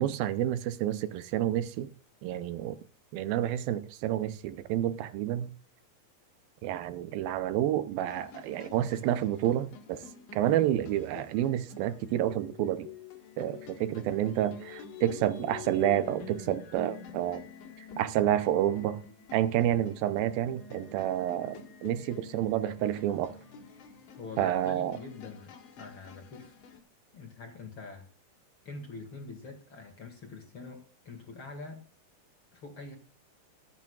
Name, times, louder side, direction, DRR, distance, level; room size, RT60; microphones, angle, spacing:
voice 1, 0.0-1.9 2.2-2.8 3.1-5.5 6.6-10.0 10.3-12.9 13.4-17.4 18.0-19.0 19.3-23.3 24.4-25.0, right 12 dB, 80° right, 2.5 m, -29 dB
sound 1, 8.1-26.8, left 6 dB, 60° left, 3.1 m, -48 dB
voice 2, 24.2-26.6 27.1-28.1 28.7-31.8 32.5-33.0, left 3 dB, 40° left, 2.3 m, -45 dB
23.0 x 8.3 x 2.4 m
omnidirectional pair, 4.3 m